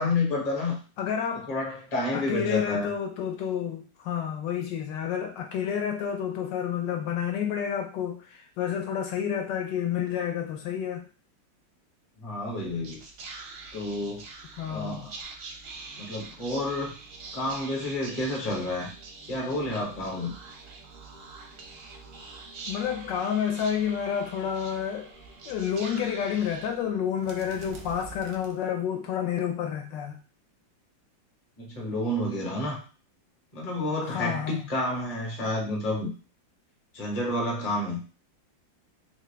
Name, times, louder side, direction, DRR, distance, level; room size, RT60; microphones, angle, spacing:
voice 1, 0.0-0.8 1.5-2.9 12.2-13.0 13.7-14.2 14.6-15.1 16.0-16.9 17.3-18.9 19.2-20.3 31.6-32.8 33.5-36.1 36.9-38.0, left 1 dB, 30° left, -1 dB, 0.7 m, -30 dB
voice 2, 1.0-1.5 2.1-11.0 14.6-15.1 22.7-25.1 25.5-30.2 34.0-34.6, left 8 dB, 75° left, 3 dB, 1.2 m, -30 dB
Whispering, 12.5-29.1, right 3 dB, 65° right, 0.8 m, -45 dB
3.6 x 2.4 x 3.2 m, 0.35 s
omnidirectional pair, 2.1 m